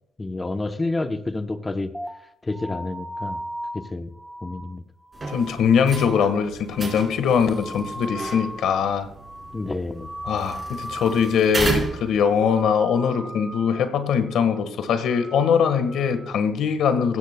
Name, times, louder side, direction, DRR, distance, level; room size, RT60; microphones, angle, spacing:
voice 1, 0.2-1.9 2.4-3.4 3.7-4.1 4.4-4.8 9.5-10.1, left 2 dB, 20° left, 8 dB, 0.8 m, -29 dB
sound 1, 1.9-8.9 9.2-9.7 10.0-11.4 11.7-12.2 12.5-13.9 14.3-14.6 15.0-16.3, equal, 5° right, 1.1 m, -38 dB
sound 2, 5.1-12.6, right 2 dB, 30° right, 4.7 m, -34 dB
voice 2, 5.3-9.1 10.2-17.2, left 6 dB, 80° left, 10 dB, 1.4 m, -22 dB
16.5 x 14.5 x 2.2 m, 0.76 s
cardioid pair, 90°, 0 cm